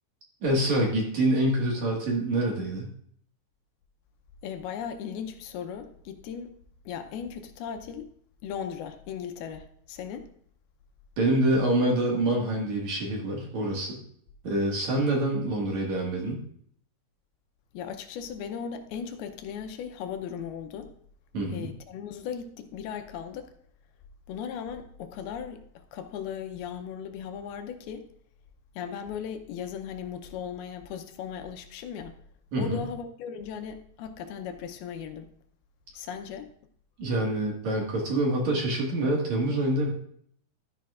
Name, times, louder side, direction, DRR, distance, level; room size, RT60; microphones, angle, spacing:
voice 1, 0.4-2.9 11.2-14.0 14.4-16.4 21.3-21.7 32.5-32.8 37.0-39.9, right 1 dB, 55° right, -1 dB, 2.6 m, -26 dB
voice 2, 4.4-6.6 6.9-8.1 8.4-10.3 17.7-20.9 21.5-23.5 24.3-28.1 28.8-32.2 32.6-35.3 35.9-36.5, left 7 dB, 80° left, 7 dB, 2.6 m, -37 dB
12.5 x 10.0 x 2.4 m, 0.63 s
omnidirectional pair, 4.5 m